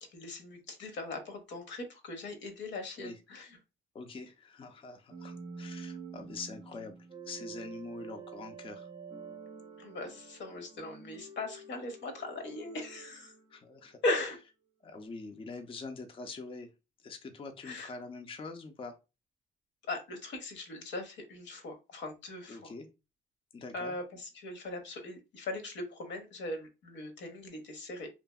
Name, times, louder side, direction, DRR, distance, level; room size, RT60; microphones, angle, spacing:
voice 1, 0.0-3.6 9.8-13.3 14.0-14.4 17.6-17.9 19.8-22.7 23.7-28.1, left 2 dB, 70° left, 5 dB, 0.8 m, -39 dB
voice 2, 3.9-7.0 7.3-8.9 13.5-14.0 14.8-16.7 17.0-19.0 22.5-22.9 23.5-23.9, left 4 dB, 25° left, 5 dB, 0.4 m, -44 dB
sound 1, 5.1-14.1, right 5 dB, 30° right, 0.6 m, -48 dB
2.7 x 2.5 x 2.2 m, 0.27 s
cardioid pair, 90°, 20 cm